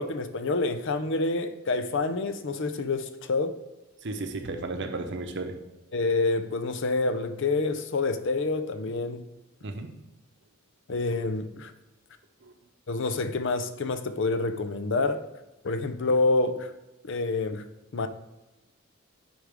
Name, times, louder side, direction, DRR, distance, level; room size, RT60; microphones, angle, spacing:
voice 1, 0.0-3.6 5.9-9.3 10.9-11.7 12.9-15.2 15.6-16.7 17.0-17.6 17.9-18.1, left 3 dB, 60° left, 0.6 m, -27 dB
voice 2, 4.0-5.6 9.6-9.9 12.4-12.5, right 2 dB, 60° right, 0.8 m, -34 dB
10.0 x 4.8 x 3.6 m
head